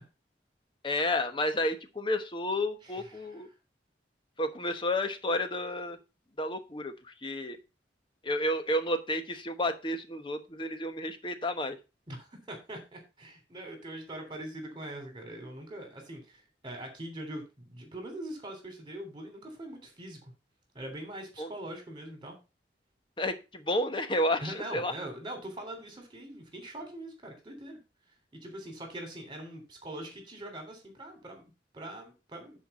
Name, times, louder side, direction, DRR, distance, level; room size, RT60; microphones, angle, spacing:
voice 1, 0.8-3.5 4.4-6.0 6.4-7.6 8.2-11.8 21.4-21.5 23.2-24.9, left 1 dB, 25° left, 8 dB, 1.1 m, -31 dB
voice 2, 2.8-3.4 12.1-20.3 20.7-22.4 24.4-27.8 28.4-32.6, right 1 dB, 25° right, 4 dB, 3.2 m, -42 dB
10.0 x 4.7 x 5.4 m, 0.29 s
head